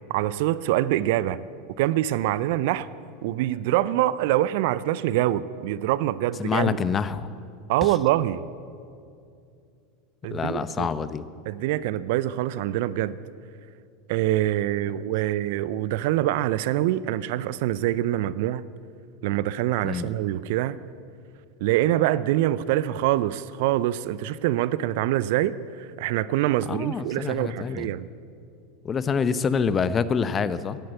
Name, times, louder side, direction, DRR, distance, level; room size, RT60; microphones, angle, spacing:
voice 1, 0.1-1.4 1.8-2.9 3.2-6.8 7.7-8.4 10.2-10.9 11.5-13.2 14.1-18.6 19.2-20.8 21.6-28.1, right 14 dB, 60° right, 17 dB, 0.5 m, -25 dB
voice 2, 6.4-7.3 7.8-7.9 10.3-11.3 19.8-20.1 26.7-27.9 28.8-30.8, left 6 dB, 25° left, 14 dB, 0.7 m, -26 dB
16.5 x 10.5 x 8.2 m, 2.4 s
figure-of-eight pair, 85°, 0 cm